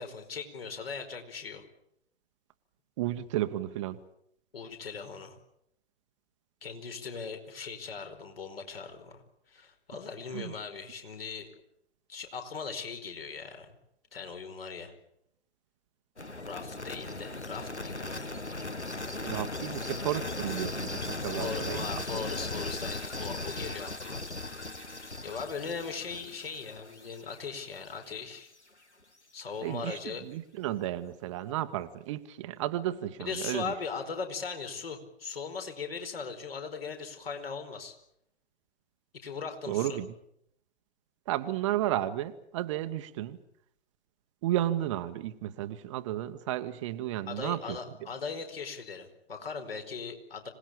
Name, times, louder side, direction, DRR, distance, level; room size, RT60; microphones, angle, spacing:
voice 1, 0.0-1.6 4.5-5.4 6.6-9.2 9.5-11.5 12.1-13.8 14.1-14.9 16.4-18.4 21.4-24.2 25.2-28.5 29.3-30.2 33.2-37.9 39.2-40.0 47.3-50.5, left 5 dB, 60° left, 6 dB, 4.9 m, -39 dB
voice 2, 3.0-4.0 10.3-10.5 19.2-22.0 29.6-33.7 39.7-40.1 41.3-43.4 44.4-47.8, right 13 dB, 30° right, 10 dB, 1.0 m, -33 dB
sound 1, 16.2-28.1, left 2 dB, 90° left, 1.5 m, -37 dB
26.0 x 18.5 x 8.7 m, 0.77 s
figure-of-eight pair, 120°, 33 cm